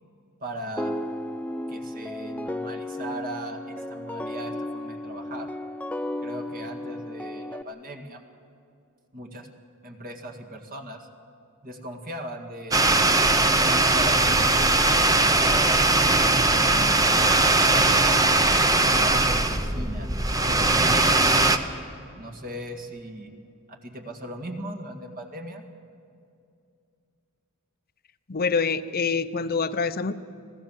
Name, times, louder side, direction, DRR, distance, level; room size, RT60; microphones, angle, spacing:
voice 1, 0.4-0.9 1.7-5.5 6.2-8.2 9.1-9.5 9.8-11.1 11.6-13.0 13.9-15.8 16.5-18.1 18.7-21.4 22.2-23.3 23.7-25.6, right 1 dB, 40° right, 5 dB, 2.1 m, -38 dB
sound 1, 0.8-7.6, left 1 dB, 5° left, 0.5 m, -34 dB
sound 2, 12.7-21.6, right 2 dB, 15° right, 0.9 m, -20 dB
voice 2, 28.3-30.1, left 5 dB, 45° left, 12 dB, 0.8 m, -25 dB
26.0 x 16.5 x 7.4 m, 2.5 s
head